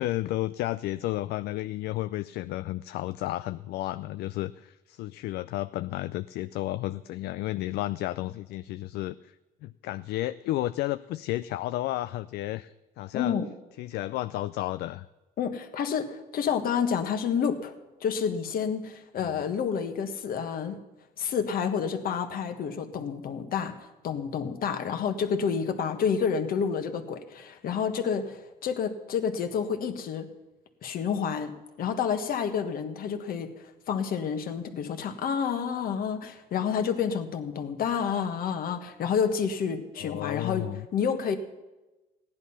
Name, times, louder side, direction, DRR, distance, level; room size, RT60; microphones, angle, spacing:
voice 1, 0.0-9.3 9.6-13.4 13.8-15.1 19.2-19.4 40.0-40.9, left 16 dB, 75° left, 13 dB, 0.4 m, -32 dB
voice 2, 13.1-13.5 15.4-17.7 18.0-20.8 21.2-30.3 30.8-41.4, left 7 dB, 60° left, 7 dB, 1.5 m, -29 dB
15.5 x 10.5 x 5.7 m, 1.1 s
cardioid pair, 110°, 17 cm